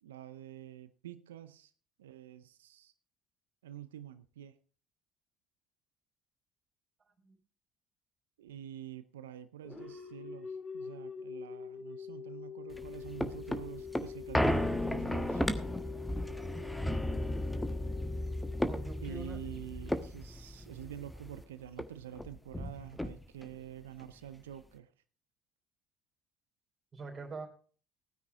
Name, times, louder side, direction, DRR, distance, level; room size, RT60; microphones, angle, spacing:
voice 1, 0.0-1.7 2.0-2.9 3.6-4.6 8.4-15.4 19.0-24.9, right 11 dB, 80° right, 13 dB, 0.6 m, -47 dB
sound 1, 9.6-20.3, left 7 dB, 40° left, 3.3 m, -45 dB
sound 2, 12.7-21.4 21.8-21.9 22.1-23.5 24.0-24.1, left 1 dB, 5° left, 1.3 m, -34 dB
voice 2, 18.6-19.4 26.9-27.5, right 3 dB, 35° right, 2 dB, 4.1 m, -44 dB
17.0 x 9.6 x 3.6 m, 0.40 s
hypercardioid pair, 60°, 0 cm